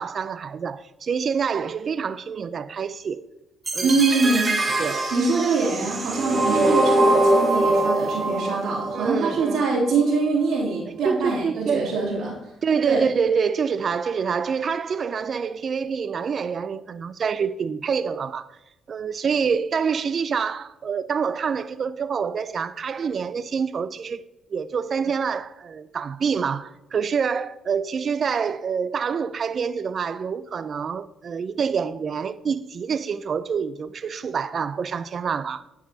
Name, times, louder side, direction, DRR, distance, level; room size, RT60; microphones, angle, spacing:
voice 1, 0.0-3.3 3.7-4.0 4.8-5.1 8.9-9.7 11.0-12.0 12.6-18.5 18.9-24.2 24.5-35.6, right 6 dB, 50° right, 0.4 m, -26 dB
sound 1, 3.7-9.7, right 1 dB, 30° right, 1.0 m, -23 dB
voice 2, 3.8-4.5 5.1-12.4 12.8-13.1, right 3 dB, 80° right, 2.8 m, -24 dB
11.0 x 4.9 x 2.8 m
cardioid pair, 90°, 0 cm